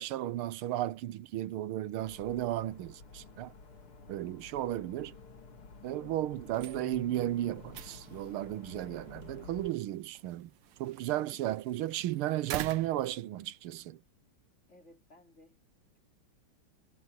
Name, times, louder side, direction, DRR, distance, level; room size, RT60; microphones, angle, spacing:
voice 1, 0.0-3.5 4.1-5.1 5.8-10.5 10.8-14.0, right 14 dB, 90° right, 1.6 m, -34 dB
sound 1, 2.0-9.7, left 4 dB, 80° left, 3.7 m, -51 dB
voice 2, 4.5-4.9 11.1-11.5 14.7-15.6, left 2 dB, 30° left, 4.2 m, -60 dB
sound 2, 6.4-13.9, right 12 dB, 70° right, 1.4 m, -46 dB
omnidirectional pair, 2.3 m